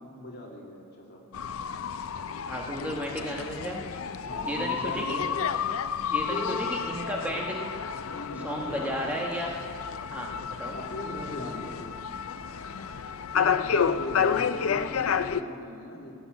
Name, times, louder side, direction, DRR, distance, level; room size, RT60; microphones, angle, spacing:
voice 1, 0.1-1.2 4.2-5.4 6.3-6.8 7.2-7.3 8.1-9.2 10.7-12.0 13.3-16.2, left 1 dB, 50° left, -2 dB, 2.7 m, -39 dB
sound 1, 1.3-15.4, left 7 dB, 70° left, 0.5 m, -30 dB
voice 2, 2.5-3.8 4.4-5.2 6.1-7.6 8.4-9.5 10.1-10.3 10.6-10.8, equal, 5° right, -2 dB, 1.2 m, -33 dB
18.0 x 7.0 x 9.2 m, 2.2 s
head